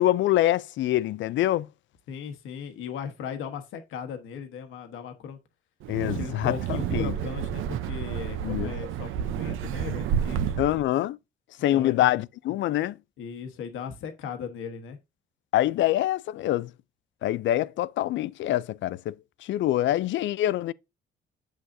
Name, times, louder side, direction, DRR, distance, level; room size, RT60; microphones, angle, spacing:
voice 1, 0.0-1.7 5.9-6.5 6.9-7.1 8.4-8.7 10.6-11.2 11.6-13.0 15.5-16.7 17.2-19.1 19.4-20.7, left 14 dB, 70° left, 0.4 m, -25 dB
voice 2, 2.1-5.4 6.0-10.6 11.7-12.1 13.2-15.0, left 7 dB, 85° left, 1.2 m, -37 dB
Wind, 5.8-10.9, right 9 dB, 85° right, 0.7 m, -30 dB
7.8 x 6.4 x 2.6 m
cardioid pair, 90°, 20 cm